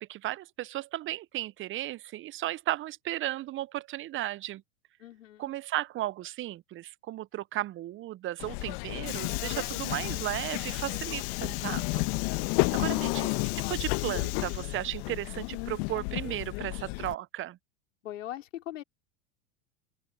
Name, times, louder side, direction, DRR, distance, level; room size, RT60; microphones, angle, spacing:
voice 1, 0.0-4.6 5.4-12.1 12.4-12.5 12.7-13.4 13.7-17.6, right 15 dB, 30° right, 0.8 m, -35 dB
voice 2, 5.0-5.5 18.0-18.8, left 13 dB, 75° left, 4.2 m, -41 dB
Subway metro underground, 8.4-17.1, left 30 dB, 50° left, 1.4 m, -31 dB
open air
hypercardioid pair, 90°, 38 cm